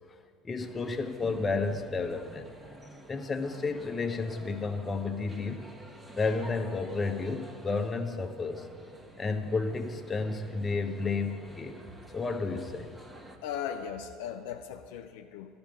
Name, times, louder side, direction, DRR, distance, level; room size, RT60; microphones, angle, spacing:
voice 1, 0.4-2.5 3.1-5.7 6.2-8.7 9.2-11.8 12.1-12.9, left 4 dB, 25° left, 6 dB, 0.9 m, -31 dB
sound 1, 0.6-13.4, right 1 dB, 15° right, 1.4 m, -49 dB
voice 2, 13.4-15.6, left 8 dB, 70° left, 6 dB, 0.5 m, -38 dB
12.5 x 5.3 x 8.9 m, 2.3 s
hypercardioid pair, 70°, 0 cm